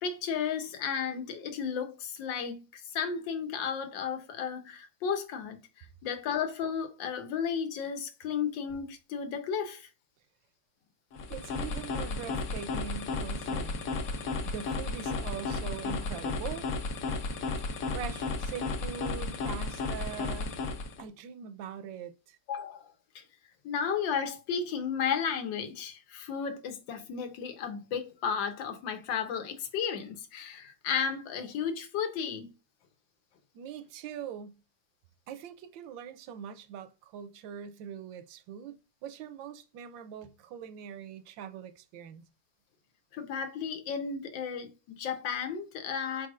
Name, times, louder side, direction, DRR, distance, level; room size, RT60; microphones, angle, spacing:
voice 1, 0.0-9.9 22.5-22.9 23.1-23.2 23.6-32.5 43.1-46.3, left 7 dB, 85° left, 1.5 m, -33 dB
sound 1, 11.1-21.0, left 3 dB, 60° left, 1.1 m, -34 dB
voice 2, 11.3-13.9 14.4-16.7 17.9-20.6 21.0-22.4 33.5-34.6 35.3-38.8 39.0-42.3, right 8 dB, 90° right, 1.3 m, -42 dB
4.7 x 4.3 x 2.4 m
omnidirectional pair, 2.0 m